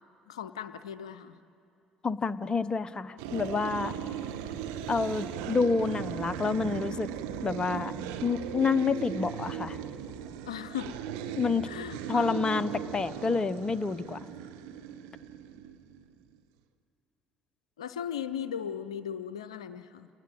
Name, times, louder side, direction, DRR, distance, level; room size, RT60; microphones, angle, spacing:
voice 1, 0.3-1.4 3.8-4.2 4.5-4.6 10.4-10.9 11.7-12.4 17.8-20.1, left 9 dB, 80° left, 12 dB, 0.6 m, -38 dB
voice 2, 2.0-3.9 4.9-7.1 7.4-7.9 8.2-9.8 11.4-11.7 12.1-14.2, left 4 dB, 25° left, 12 dB, 0.8 m, -28 dB
sound 1, 3.2-16.1, right 9 dB, 70° right, 1.0 m, -38 dB
29.0 x 19.5 x 7.7 m, 2.8 s
figure-of-eight pair, 55°, 3 cm